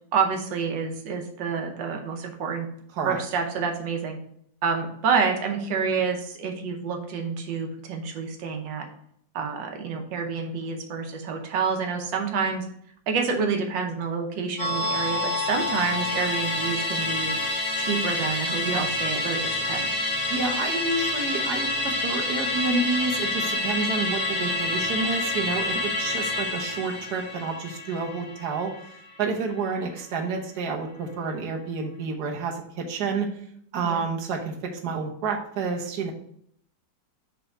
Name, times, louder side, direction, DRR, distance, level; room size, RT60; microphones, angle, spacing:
voice 1, 0.1-2.7 3.1-4.2 4.6-8.9 9.3-12.6 13.1-17.3 17.8-19.9 33.8-34.0, right 5 dB, 90° right, 3 dB, 1.6 m, -28 dB
Musical instrument, 14.6-29.3 29.6-29.7, left 2 dB, 25° left, 1.4 m, -28 dB
voice 2, 20.3-28.7 29.2-33.3 33.7-36.1, right 4 dB, 65° right, 1 dB, 1.6 m, -29 dB
7.6 x 3.3 x 4.9 m, 0.67 s
omnidirectional pair, 1.9 m